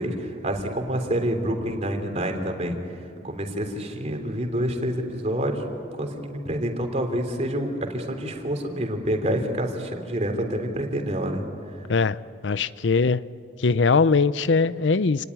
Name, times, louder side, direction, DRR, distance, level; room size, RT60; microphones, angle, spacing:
voice 1, 0.0-2.8 3.2-11.4, equal, 40° right, 4 dB, 3.4 m, -27 dB
voice 2, 12.4-13.2 13.6-15.2, left 4 dB, 80° left, 16 dB, 0.6 m, -21 dB
28.5 x 19.5 x 9.8 m, 2.7 s
head